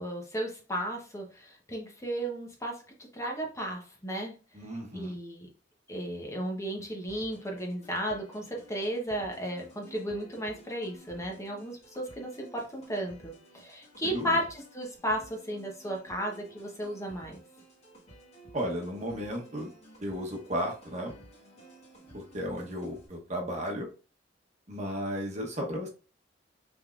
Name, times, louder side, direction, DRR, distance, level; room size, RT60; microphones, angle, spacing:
voice 1, 0.0-4.3 4.9-5.5 5.9-17.4, equal, 15° left, 0 dB, 0.9 m, -34 dB
voice 2, 4.5-5.2 14.0-14.4 18.5-19.7 20.0-21.1 22.1-23.9 24.7-25.9, equal, 40° right, 1 dB, 1.1 m, -34 dB
sound 1, 7.1-23.1, right 2 dB, 40° left, 1.9 m, -54 dB
5.3 x 3.5 x 2.5 m, 0.36 s
head